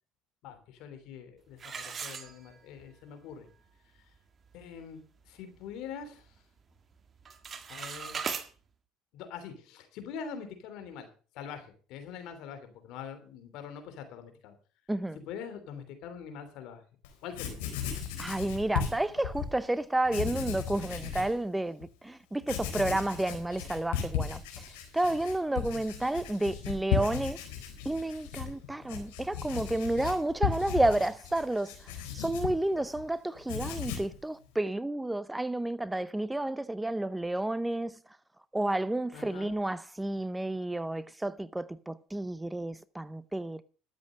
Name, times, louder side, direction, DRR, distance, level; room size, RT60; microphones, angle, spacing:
voice 1, 0.4-3.5 4.5-6.3 7.7-8.2 9.1-11.1 11.3-14.5 15.1-16.8 17.2-17.6 25.7-25.8 39.1-39.5, left 7 dB, 70° left, 3.2 m, -44 dB
sound 1, 1.6-2.9 3.3-3.4 4.0-4.1 4.5-4.8 5.2-6.3 6.6-6.9 7.2-8.5, right 6 dB, 35° right, 1.7 m, -39 dB
voice 2, 14.9-15.2 18.2-24.6 24.9-27.4 27.8-31.7 32.1-37.9 38.5-43.6, right 1 dB, 10° right, 0.6 m, -31 dB
Writing, 17.0-17.1 17.3-19.5 20.0-21.3 21.8-21.9 22.4-33.1 33.4-34.2, left 8 dB, 85° left, 4.0 m, -36 dB
12.5 x 7.7 x 6.4 m
supercardioid pair, 85°, 0 cm